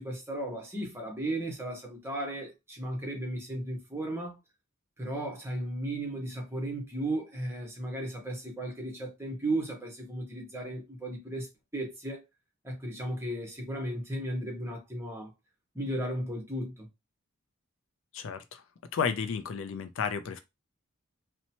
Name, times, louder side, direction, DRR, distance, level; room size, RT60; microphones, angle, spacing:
voice 1, 0.0-4.4 5.0-11.5 11.7-12.2 12.6-15.3 15.7-16.9, right 1 dB, 10° right, 0.9 m, -35 dB
voice 2, 18.1-18.6 18.9-20.4, left 6 dB, 70° left, 0.4 m, -32 dB
2.8 x 2.1 x 2.8 m
head